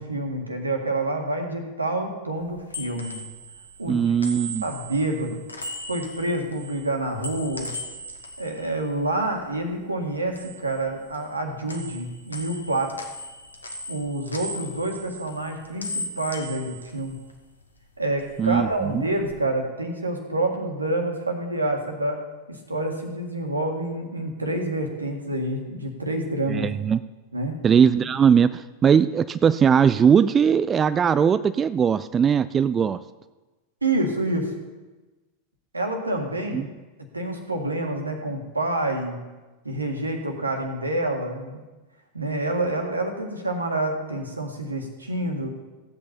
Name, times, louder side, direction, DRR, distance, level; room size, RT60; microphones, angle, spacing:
voice 1, 0.0-3.2 3.8-4.0 4.6-5.4 5.9-7.7 8.4-12.9 13.9-17.2 18.0-22.2 22.5-26.7 27.3-27.6 33.8-34.5 35.7-36.7 37.1-39.2 39.6-41.6 42.1-45.5, right 2 dB, 80° right, 3 dB, 1.9 m, -27 dB
sound 1, 2.4-9.7 10.0-11.4 11.7-17.7 18.0-19.3, equal, 80° left, 1.4 m, -38 dB
voice 2, 3.9-4.6 18.4-19.0 26.5-27.0 27.6-33.0 36.5-36.7, right 7 dB, 20° right, 14 dB, 0.4 m, -20 dB
16.0 x 8.2 x 4.4 m, 1.2 s
figure-of-eight pair, 90°, 0 cm